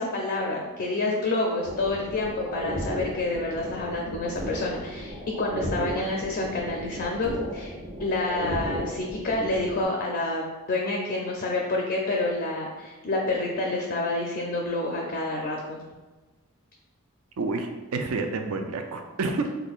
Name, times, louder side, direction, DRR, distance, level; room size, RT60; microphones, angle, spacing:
voice 1, 0.0-7.7 8.0-15.8, left 2 dB, 50° left, -1 dB, 0.4 m, -28 dB
sound 1, 1.6-9.8, equal, 45° right, 1.0 m, -35 dB
voice 2, 17.4-19.5, right 3 dB, 85° right, 5 dB, 0.4 m, -29 dB
5.2 x 2.2 x 2.4 m, 1.2 s
head